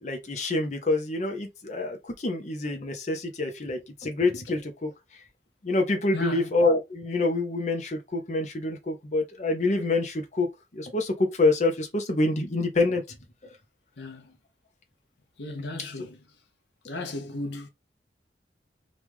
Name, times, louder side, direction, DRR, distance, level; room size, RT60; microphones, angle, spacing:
voice 1, 0.0-4.9 5.6-10.5 10.7-13.2, left 2 dB, 40° left, 0.7 m, -26 dB
voice 2, 6.1-6.5 14.0-14.4 15.4-16.2 16.8-17.7, left 2 dB, 85° left, 0.7 m, -35 dB
3.0 x 2.5 x 3.5 m
head